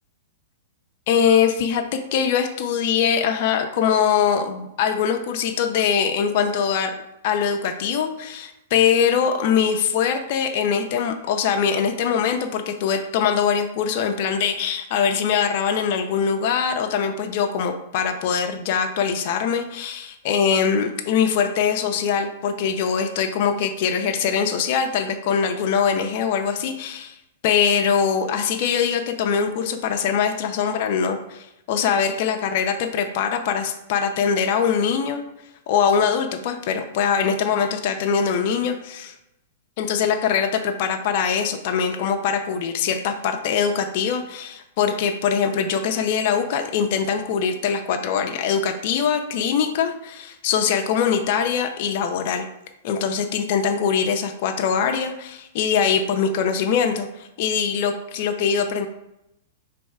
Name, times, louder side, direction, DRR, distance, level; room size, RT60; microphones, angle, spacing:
voice 1, 1.1-1.8 2.1-6.9 7.2-27.2 27.4-35.2 35.7-39.1 39.8-52.5 52.8-58.9, left 7 dB, 50° left, 5 dB, 0.5 m, -22 dB
3.4 x 3.1 x 4.8 m, 0.86 s
hypercardioid pair, 130°, 0 cm